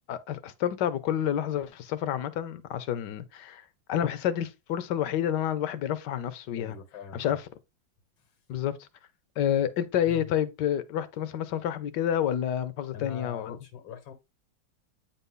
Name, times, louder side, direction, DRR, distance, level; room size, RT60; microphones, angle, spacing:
voice 1, 0.1-6.8 7.1-7.4 8.5-8.9 9.4-13.6, left 10 dB, 70° left, 1.4 m, -29 dB
voice 2, 6.6-7.4 8.2-8.3 10.1-10.3 12.9-14.1, left 8 dB, 85° left, 2.2 m, -41 dB
8.8 x 4.1 x 3.7 m
omnidirectional pair, 2.1 m